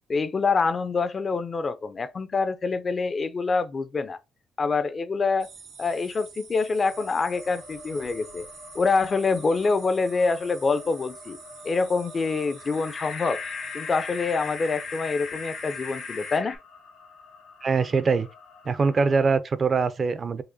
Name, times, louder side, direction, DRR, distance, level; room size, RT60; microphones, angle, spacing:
voice 1, 0.1-4.2 4.6-5.5 5.8-8.5 8.7-11.4 11.6-13.4 13.7-16.6, left 4 dB, 40° left, 0.4 m, -26 dB
sound 1, 5.4-16.4, right 5 dB, 80° right, 1.4 m, -47 dB
sound 2, 6.8-19.4, left 3 dB, 85° left, 1.7 m, -49 dB
sound 3, 12.6-16.6, left 5 dB, 60° left, 1.0 m, -36 dB
voice 2, 17.6-18.3 18.7-20.4, right 4 dB, 40° right, 0.3 m, -23 dB
4.8 x 2.1 x 2.6 m
cardioid pair, 90°, 0 cm